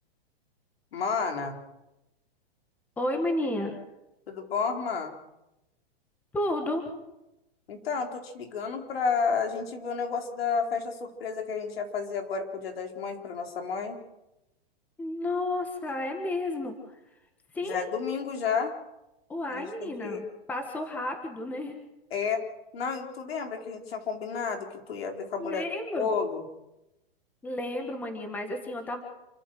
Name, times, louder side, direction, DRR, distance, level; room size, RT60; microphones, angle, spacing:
voice 1, 0.9-1.6 4.3-5.2 7.7-14.0 17.6-18.7 19.5-20.2 22.1-22.4 22.7-25.6 25.9-26.4, left 5 dB, 75° left, 4 dB, 4.1 m, -31 dB
voice 2, 3.0-3.8 6.3-6.9 15.0-16.7 17.5-17.8 19.3-21.8 25.4-26.1 27.4-29.0, left 1 dB, 5° left, 5 dB, 1.5 m, -32 dB
28.0 x 13.0 x 7.7 m, 0.93 s
supercardioid pair, 170°, 30 cm